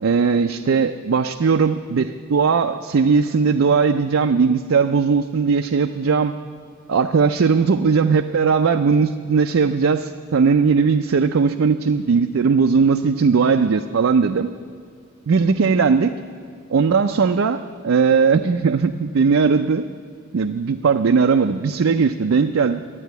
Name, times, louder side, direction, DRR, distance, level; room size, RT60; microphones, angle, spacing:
voice 1, 0.0-6.3 6.9-14.5 15.3-16.1 16.7-19.8 20.3-22.8, right 5 dB, 70° right, 7 dB, 0.4 m, -18 dB
12.0 x 8.9 x 9.4 m, 2.2 s
head